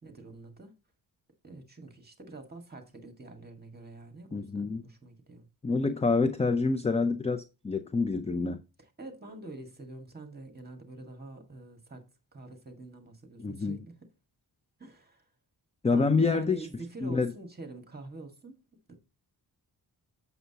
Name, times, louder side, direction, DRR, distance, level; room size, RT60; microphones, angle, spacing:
voice 1, 0.0-0.7 1.4-5.4 8.8-12.0 12.3-14.0 14.8-15.2 15.9-18.6 18.9-19.0, right 2 dB, 25° right, 1.8 m, -46 dB
voice 2, 4.3-4.8 5.6-8.6 13.4-13.9 15.8-16.7 17.0-17.3, left 4 dB, 15° left, 0.5 m, -27 dB
7.9 x 6.8 x 2.9 m
wide cardioid pair, 110°, 40 cm